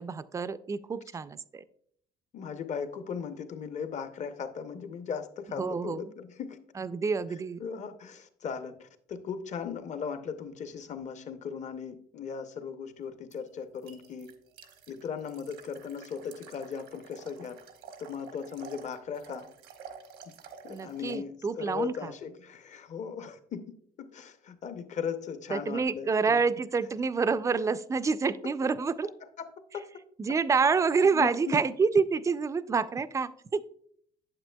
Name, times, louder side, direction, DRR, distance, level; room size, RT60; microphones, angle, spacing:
voice 1, 0.0-1.6 5.6-6.1 6.8-7.6 20.7-22.1 25.5-29.1 30.2-33.6, right 5 dB, 20° right, 15 dB, 0.3 m, -28 dB
voice 2, 2.3-6.6 7.6-14.3 14.9-17.6 18.0-19.5 20.6-26.4 29.4-29.5 29.7-29.9 31.1-31.6, left 6 dB, 45° left, 10 dB, 0.7 m, -38 dB
sound 1, 13.3-21.2, right 6 dB, 85° right, 0.9 m, -50 dB
8.7 x 7.4 x 2.2 m, 0.65 s
cardioid pair, 110°, 17 cm